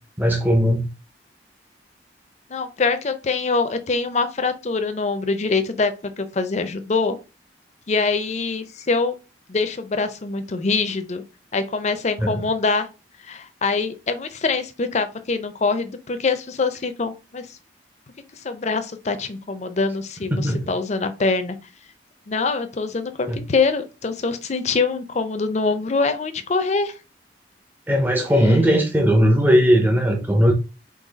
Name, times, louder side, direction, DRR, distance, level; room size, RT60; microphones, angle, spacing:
voice 1, 0.2-0.9 12.2-12.4 20.3-20.6 23.3-23.4 27.9-30.5, equal, 10° right, 0.6 m, -18 dB
voice 2, 2.5-7.2 7.9-9.2 9.5-11.2 11.5-12.9 13.2-17.5 18.4-21.6 22.3-26.9 28.4-28.6, left 4 dB, 40° left, 0.5 m, -24 dB
4.0 x 2.8 x 3.9 m
head